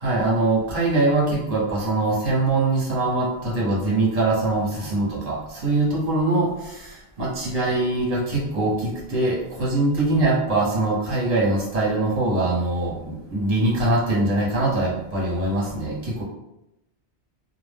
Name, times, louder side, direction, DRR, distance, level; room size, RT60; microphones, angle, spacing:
voice 1, 0.0-16.2, right 2 dB, 40° right, -5 dB, 0.8 m, -23 dB
2.1 x 2.0 x 3.3 m, 0.87 s
omnidirectional pair, 1.1 m